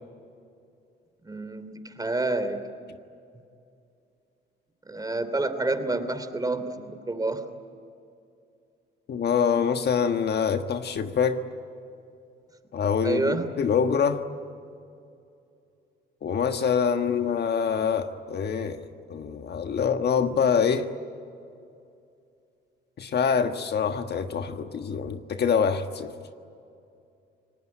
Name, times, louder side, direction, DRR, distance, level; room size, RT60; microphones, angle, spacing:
voice 1, 1.2-2.6 4.9-7.4 13.0-13.5, right 2 dB, 20° right, 2.9 m, -28 dB
voice 2, 9.1-11.4 12.7-14.2 16.2-20.9 23.0-26.1, left 6 dB, 55° left, 1.5 m, -25 dB
29.0 x 19.5 x 9.8 m
cardioid pair, 90°, 20 cm